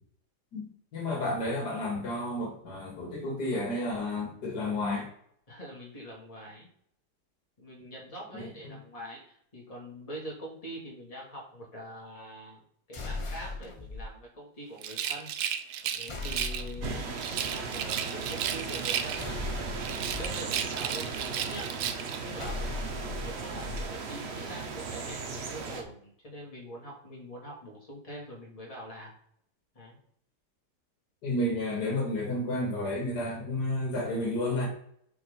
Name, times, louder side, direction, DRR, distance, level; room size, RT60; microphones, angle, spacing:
voice 1, 0.9-5.1 8.3-8.8 31.2-34.7, left 1 dB, 75° left, 1 dB, 2.1 m, -31 dB
voice 2, 5.5-6.7 7.6-12.6 12.9-15.3 15.8-19.6 20.0-29.1 29.7-30.0, right 1 dB, 20° left, -3 dB, 2.2 m, -44 dB
sound 1, 12.9-14.0 16.1-17.1 19.2-20.3 22.4-23.8, left 3 dB, 55° left, 0.3 m, -38 dB
Rattle, 14.8-16.7 17.2-19.4 19.8-22.2, right 9 dB, 75° right, 1.1 m, -34 dB
sound 2, 16.8-25.8, right 4 dB, 50° right, 0.9 m, -37 dB
5.1 x 4.5 x 5.4 m, 0.68 s
omnidirectional pair, 1.8 m